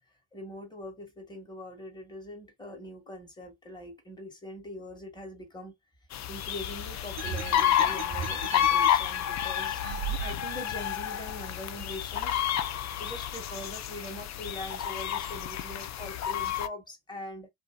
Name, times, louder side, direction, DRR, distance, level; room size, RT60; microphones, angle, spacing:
voice 1, 0.3-5.7 6.3-12.4 13.0-17.5, left 1 dB, 10° left, 1.4 m, -42 dB
sound 1, 6.1-16.7, left 10 dB, 40° left, 0.4 m, -30 dB
sound 2, 7.2-8.9 9.8-10.7, right 7 dB, 55° right, 0.9 m, -37 dB
2.7 x 2.6 x 2.2 m
supercardioid pair, 75°, 46 cm